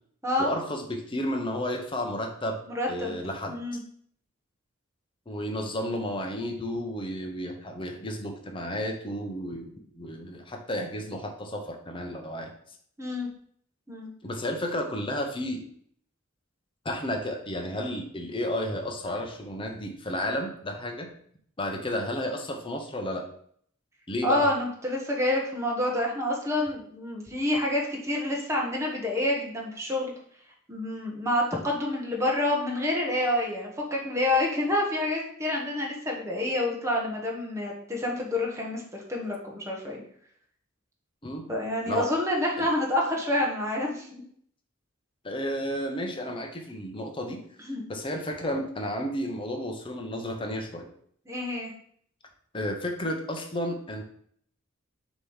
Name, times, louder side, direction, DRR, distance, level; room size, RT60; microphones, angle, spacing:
voice 1, 0.4-2.6 2.9-3.5 5.3-12.5 14.2-15.6 16.8-21.1 21.6-23.2 24.1-24.5 41.2-41.5 41.9-42.1 42.6-42.7 45.2-47.4 47.9-50.9 52.5-54.0, left 1 dB, 25° left, 2 dB, 0.9 m, -32 dB
voice 2, 2.7-3.2 3.5-3.8 13.0-13.3 13.9-14.1 24.2-30.1 30.7-38.8 39.1-40.0 41.5-44.2 47.7-47.8 51.3-51.7, left 1 dB, 15° right, -2 dB, 1.1 m, -28 dB
6.8 x 3.1 x 5.6 m, 0.63 s
head